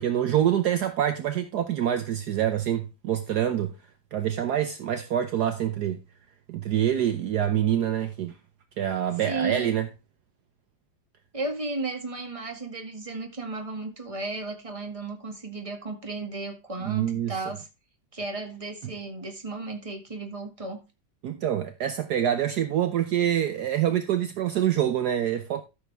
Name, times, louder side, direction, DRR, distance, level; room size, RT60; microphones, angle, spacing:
voice 1, 0.0-3.7 4.1-6.0 6.5-8.4 8.8-9.9 16.8-17.4 21.2-25.6, right 10 dB, 65° right, 1.2 m, -26 dB
voice 2, 9.3-9.7 11.3-17.7 18.1-20.8, right 3 dB, 20° right, 1.9 m, -34 dB
13.0 x 6.8 x 3.4 m
omnidirectional pair, 2.0 m